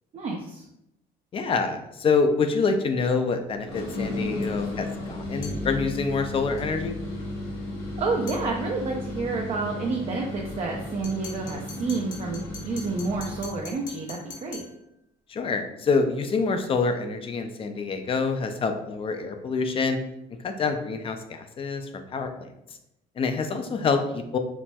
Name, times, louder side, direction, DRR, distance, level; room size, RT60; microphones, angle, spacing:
voice 1, 0.1-0.6 8.0-14.6, right 3 dB, 40° right, 0 dB, 0.4 m, -29 dB
voice 2, 1.3-7.0 15.3-20.0 20.4-22.5 23.2-24.4, left 4 dB, 35° left, 7 dB, 0.3 m, -26 dB
sound 1, 3.6-13.6, left 1 dB, 80° left, 0.9 m, -34 dB
sound 2, 5.4-5.7 8.3-8.5 11.0-14.8, left 4 dB, 50° left, 0.9 m, -43 dB
4.1 x 2.1 x 2.2 m, 0.83 s
cardioid pair, 110°, 17 cm